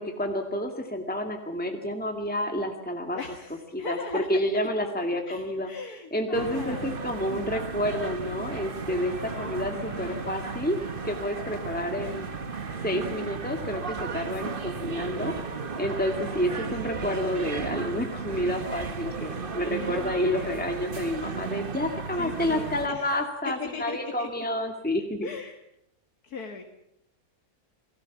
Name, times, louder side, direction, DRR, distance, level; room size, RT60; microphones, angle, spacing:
voice 1, 0.0-3.2 3.7-5.7 6.1-10.8 11.0-12.3 12.8-15.3 15.8-25.3, equal, 5° left, 3 dB, 2.1 m, -29 dB
voice 2, 3.1-4.3 5.3-6.9 9.3-10.5 11.7-12.2 16.1-16.8 19.8-20.7 22.2-24.3 25.2-25.6 26.2-26.6, left 5 dB, 85° left, 4 dB, 2.4 m, -39 dB
sound 1, 6.3-22.9, right 5 dB, 40° right, 1.5 m, -35 dB
Wind instrument woodwind instrument, 8.5-14.7, right 1 dB, 65° left, 4.0 m, -48 dB
29.5 x 19.5 x 7.3 m, 0.79 s
omnidirectional pair, 1.6 m